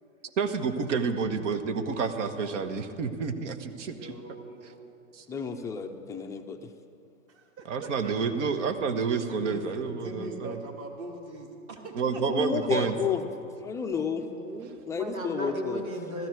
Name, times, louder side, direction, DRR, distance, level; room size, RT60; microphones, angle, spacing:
voice 1, 0.4-4.1 5.1-5.2 7.7-10.6 11.9-12.9, right 5 dB, 60° right, 8 dB, 1.4 m, -29 dB
voice 2, 3.9-5.0 7.3-8.2 9.3-9.8 10.0-12.9 14.8-14.9, right 2 dB, 35° right, 2 dB, 2.4 m, -42 dB
voice 3, 5.3-6.7 12.3-13.3 13.6-14.3 14.9-15.8, left 6 dB, 10° left, 5 dB, 0.4 m, -31 dB
voice 4, 14.0-16.3, right 1 dB, 85° right, 2 dB, 2.6 m, -36 dB
16.5 x 14.0 x 4.7 m, 2.5 s
hypercardioid pair, 120°, 40 cm